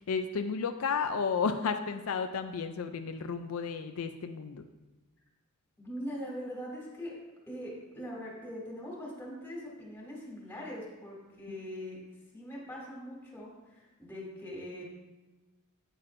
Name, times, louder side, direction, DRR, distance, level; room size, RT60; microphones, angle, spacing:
voice 1, 0.1-4.7, left 5 dB, 80° left, 8 dB, 0.4 m, -32 dB
voice 2, 5.8-7.1 7.5-12.0 12.3-14.8, equal, 10° left, -4 dB, 2.6 m, -42 dB
9.0 x 8.5 x 2.6 m, 1.2 s
head